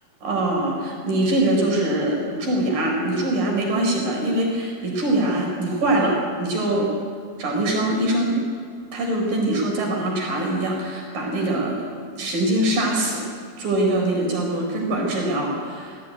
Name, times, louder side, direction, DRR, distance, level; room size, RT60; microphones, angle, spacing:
voice 1, 0.2-6.9 7.4-8.4 8.9-11.8 12.1-13.3 13.6-16.0, right 1 dB, 60° right, 0 dB, 6.2 m, -23 dB
19.0 x 15.5 x 9.5 m, 2.1 s
omnidirectional pair, 4.5 m